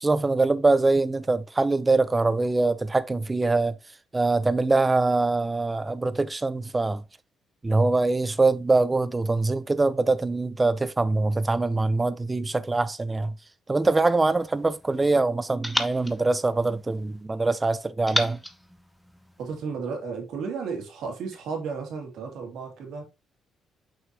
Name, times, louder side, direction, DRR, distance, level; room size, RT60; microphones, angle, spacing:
voice 1, 0.0-3.8 4.1-7.0 7.6-13.4 13.7-18.4, right 3 dB, 20° right, 0.7 m, -23 dB
sound 1, 13.8-15.0 15.6-17.3 18.1-19.7, equal, ahead, 1.0 m, -34 dB
voice 2, 19.4-23.0, right 5 dB, 80° right, 2.6 m, -33 dB
6.4 x 5.7 x 2.9 m
cardioid pair, 90°, 0 cm